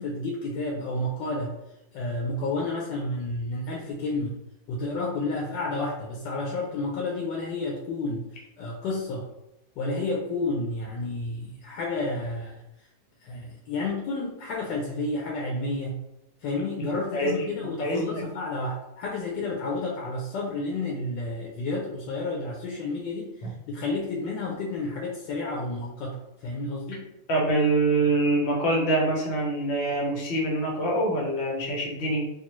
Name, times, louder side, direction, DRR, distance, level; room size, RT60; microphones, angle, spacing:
voice 1, 0.0-1.5 1.9-4.4 4.7-8.3 8.6-9.3 9.8-12.6 13.2-16.0 16.4-23.3 23.7-27.1, left 2 dB, 75° left, -2 dB, 1.2 m, -31 dB
voice 2, 17.1-18.3 27.3-32.3, right 1 dB, 50° left, -2 dB, 0.8 m, -25 dB
3.6 x 2.3 x 3.0 m, 0.89 s
omnidirectional pair, 2.1 m